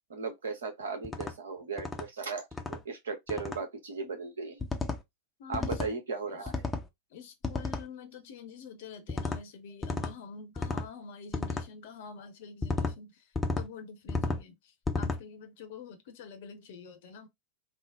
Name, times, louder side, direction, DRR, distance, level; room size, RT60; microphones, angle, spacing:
voice 1, 0.1-4.6 5.5-6.6, right 4 dB, 65° right, 1.0 m, -37 dB
sound 1, 1.0-1.3 1.8-2.1 2.5-2.8 3.3-3.6 4.6-5.0 5.5-5.9 6.5-6.9 7.4-7.9 9.1-9.4 9.8-10.1 10.6-10.9 11.3-11.7 12.6-12.9 13.4-13.7 14.1-14.4 14.9-15.2, left 3 dB, 10° left, 0.6 m, -32 dB
voice 2, 5.4-5.8 6.3-6.5 7.1-17.3, left 5 dB, 50° left, 0.7 m, -47 dB
3.6 x 2.0 x 3.5 m
figure-of-eight pair, 90°, 0 cm